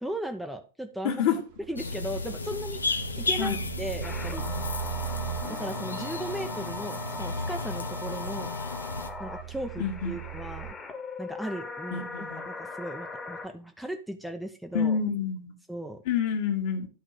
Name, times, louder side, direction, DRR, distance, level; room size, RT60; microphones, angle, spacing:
voice 1, 0.0-1.2 1.7-2.8 3.2-4.5 5.5-8.5 9.2-10.7 11.2-12.1 12.4-15.0 15.7-16.0, right 1 dB, ahead, 5 dB, 0.7 m, -36 dB
voice 2, 1.0-1.4 3.4-3.6 9.8-10.2 11.9-12.5 14.7-15.5 16.1-16.9, left 7 dB, 50° left, 4 dB, 1.6 m, -28 dB
sound 1, 1.3-10.7, right 16 dB, 50° right, 0.5 m, -40 dB
sound 2, 1.8-9.1, left 3 dB, 75° left, 0.6 m, -34 dB
sound 3, 4.0-13.5, left 3 dB, 20° left, 1.3 m, -40 dB
11.0 x 3.7 x 4.9 m, 0.34 s
figure-of-eight pair, 90°, 0 cm